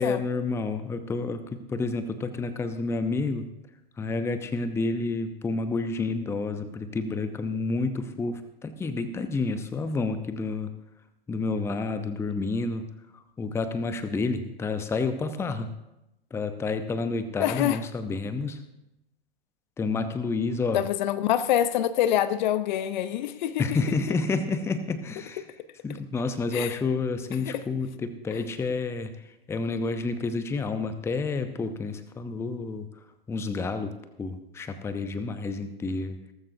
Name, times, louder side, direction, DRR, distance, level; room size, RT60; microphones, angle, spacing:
voice 1, 0.0-3.4 4.0-10.7 11.3-12.8 13.4-15.7 16.3-18.6 19.8-20.8 23.6-25.4 25.8-29.1 29.5-32.9 33.3-33.9 34.2-36.2, left 3 dB, 10° left, 0.7 m, -29 dB
voice 2, 17.4-17.8 20.7-23.9 25.4-25.5 26.5-26.8 27.4-27.6, left 11 dB, 45° left, 0.9 m, -26 dB
18.0 x 14.5 x 2.7 m
figure-of-eight pair, 110°, 31 cm